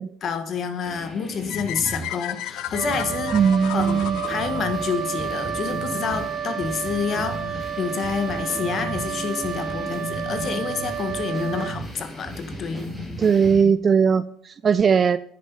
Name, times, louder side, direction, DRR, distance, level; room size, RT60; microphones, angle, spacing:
voice 1, 0.2-3.3 3.7-4.0 4.3-12.9, left 6 dB, 35° left, 8 dB, 1.5 m, -28 dB
sound 1, 0.8-13.6, equal, 5° left, 2.7 m, -35 dB
sound 2, 1.5-5.6, left 16 dB, 65° left, 0.4 m, -34 dB
Wind instrument woodwind instrument, 2.7-11.8, right 9 dB, 50° right, 1.3 m, -31 dB
voice 2, 3.3-4.2 13.2-15.2, right 6 dB, 25° right, 16 dB, 0.4 m, -19 dB
10.5 x 9.8 x 5.6 m, 0.65 s
cardioid pair, 165°, 0 cm